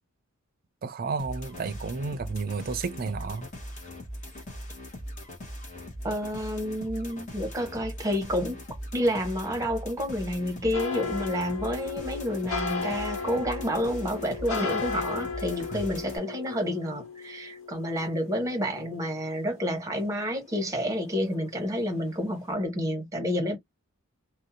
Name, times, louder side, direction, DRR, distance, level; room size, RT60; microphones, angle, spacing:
voice 1, 0.8-3.5 15.7-15.9, right 4 dB, 45° right, 0.4 m, -32 dB
sound 1, 1.2-16.2, equal, 35° left, 0.9 m, -40 dB
voice 2, 6.0-8.6 8.9-23.6, equal, 15° right, 0.8 m, -29 dB
sound 2, 10.7-20.0 20.3-21.4 21.7-22.1 22.4-22.5, left 4 dB, 80° left, 0.9 m, -35 dB
2.5 x 2.1 x 2.6 m
head